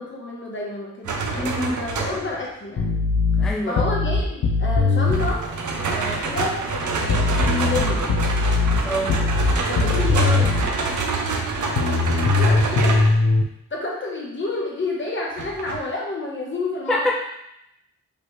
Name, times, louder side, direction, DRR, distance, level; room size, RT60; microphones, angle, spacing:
voice 1, 0.0-2.9 3.7-8.1 9.7-10.6 12.4-13.0 13.7-17.1, left 2 dB, 40° left, -3 dB, 1.1 m, -30 dB
sound 1, 1.0-2.4 5.1-13.2 15.4-15.8, right 3 dB, 70° right, 0.7 m, -26 dB
voice 2, 1.4-1.7 3.4-3.8 8.8-9.2 16.9-17.1, left 1 dB, ahead, -1 dB, 0.4 m, -25 dB
sound 2, 2.8-5.4 7.1-10.7 11.8-13.4, left 3 dB, 70° left, 0.6 m, -20 dB
5.0 x 3.2 x 3.1 m, 0.79 s
wide cardioid pair, 140°, 31 cm